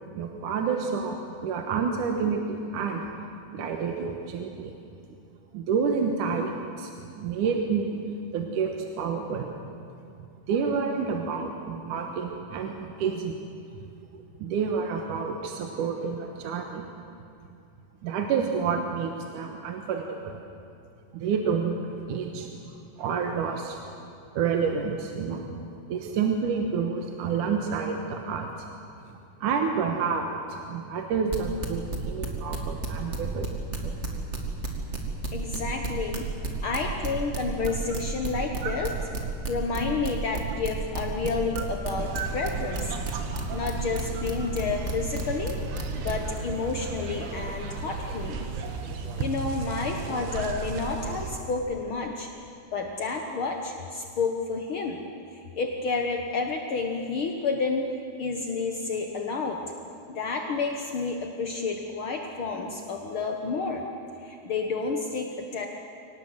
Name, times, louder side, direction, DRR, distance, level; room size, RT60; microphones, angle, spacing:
voice 1, 0.0-3.0 3.5-4.7 5.5-6.5 6.8-6.9 7.2-8.0 8.3-9.5 10.5-13.4 14.1-16.8 18.0-20.4 21.1-21.8 22.1-22.5 23.0-23.9 24.4-25.4 25.9-28.6 29.4-33.5 33.8-34.0 38.6-38.7 41.6-41.7 42.1-42.3, right 6 dB, 65° right, 3 dB, 2.5 m, -29 dB
sound 1, 31.1-33.5 33.7-46.4, right 2 dB, 25° right, 1.7 m, -31 dB
voice 2, 35.3-36.3 36.6-38.9 39.5-42.9 43.5-45.6 46.0-48.4 49.2-52.3 52.7-55.0 55.3-57.9 58.2-59.6 60.1-63.9 64.2-65.7, left 4 dB, 80° left, 2 dB, 1.1 m, -30 dB
sound 2, 42.0-51.4, right 4 dB, 85° right, 3.6 m, -35 dB
24.5 x 18.5 x 8.0 m, 2.6 s
omnidirectional pair, 4.5 m